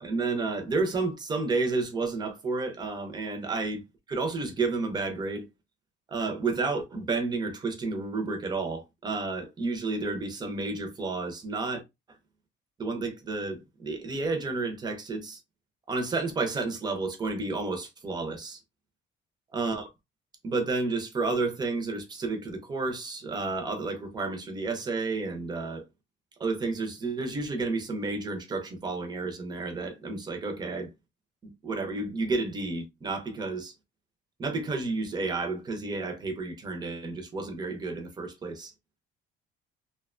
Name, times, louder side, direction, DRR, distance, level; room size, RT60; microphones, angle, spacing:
voice 1, 0.0-3.8 4.1-5.4 6.1-11.8 12.1-12.2 12.8-15.4 15.9-18.6 19.5-19.9 20.4-25.8 26.4-30.9 31.4-33.7 34.4-38.7, right 3 dB, 20° right, 0.5 m, -31 dB
2.6 x 2.1 x 2.4 m
cardioid pair, 165°, 20 cm